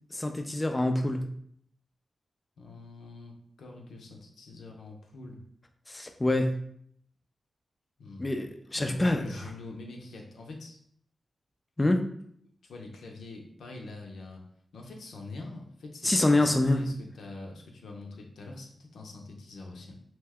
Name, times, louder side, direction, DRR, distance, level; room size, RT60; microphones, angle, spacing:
voice 1, 0.2-1.2 5.9-6.5 8.2-9.2 11.8-12.0 16.0-16.8, left 2 dB, 20° left, 5 dB, 0.3 m, -25 dB
voice 2, 2.6-5.4 8.0-8.3 8.7-10.8 12.6-14.4 14.7-19.9, left 3 dB, 90° left, 1 dB, 0.5 m, -44 dB
2.8 x 2.2 x 3.4 m, 0.65 s
cardioid pair, 65°, 0 cm